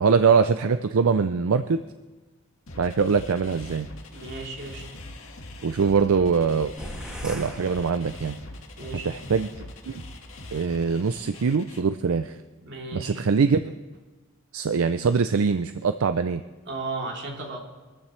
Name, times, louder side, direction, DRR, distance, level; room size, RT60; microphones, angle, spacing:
voice 1, 0.0-1.8 2.8-3.9 5.6-6.7 7.2-8.4 9.0-9.5 9.9-10.0 10.5-12.4 12.9-13.7 14.5-16.4, right 5 dB, 80° right, 10 dB, 0.5 m, -23 dB
sound 1, 2.7-11.8, left 1 dB, 75° left, 1.8 m, -42 dB
voice 2, 4.1-4.8 8.8-9.1 12.6-13.2 16.7-17.6, right 3 dB, 55° right, -2 dB, 3.1 m, -35 dB
sound 2, 6.8-8.6, equal, 5° right, 2.3 m, -39 dB
23.5 x 14.0 x 3.2 m, 1.3 s
head